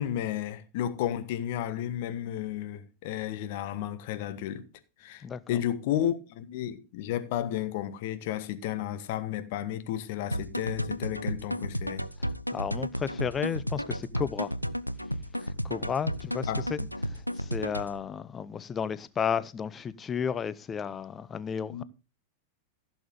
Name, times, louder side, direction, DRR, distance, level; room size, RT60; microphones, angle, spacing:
voice 1, 0.0-4.6 5.0-12.0 16.5-16.9 21.7-21.8, left 11 dB, 50° left, 1.3 m, -32 dB
voice 2, 5.2-5.6 12.2-14.5 15.4-21.8, left 7 dB, 20° left, 0.6 m, -33 dB
sound 1, 10.3-18.0, equal, 90° left, 0.5 m, -33 dB
15.5 x 7.1 x 3.7 m
figure-of-eight pair, 90°, 0 cm